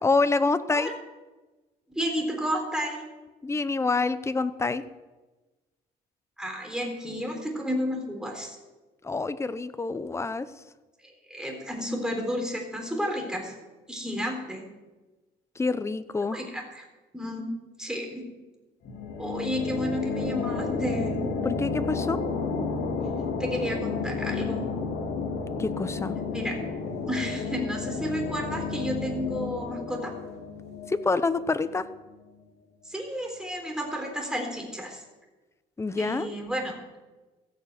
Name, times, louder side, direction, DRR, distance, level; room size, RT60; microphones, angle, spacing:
voice 1, 0.0-0.9 3.4-4.8 9.0-10.5 15.6-16.4 21.4-22.2 25.6-26.2 30.9-31.9 35.8-36.3, left 3 dB, 15° left, 13 dB, 0.7 m, -26 dB
voice 2, 1.9-3.0 6.4-8.6 11.0-13.5 13.9-14.6 16.3-16.8 17.1-17.5 17.8-18.2 19.2-21.1 23.4-24.6 26.3-26.6 27.1-30.1 32.8-35.0 36.0-36.8, equal, 5° right, 2 dB, 3.9 m, -31 dB
sound 1, 18.8-32.2, left 4 dB, 75° left, 2.9 m, -32 dB
15.5 x 6.7 x 9.0 m, 1.2 s
cardioid pair, 110°, 17 cm